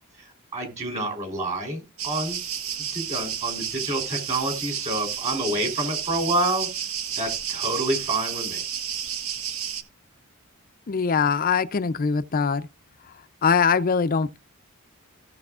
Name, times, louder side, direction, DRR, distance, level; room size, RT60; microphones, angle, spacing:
voice 1, 0.2-2.4 2.8-6.7 7.1-8.6, right 2 dB, 30° right, 3.4 m, -28 dB
sound 1, 2.0-9.8, right 9 dB, 65° right, 1.1 m, -31 dB
voice 2, 10.9-12.7 13.4-14.4, left 5 dB, 40° left, 0.4 m, -22 dB
16.5 x 6.8 x 2.4 m
head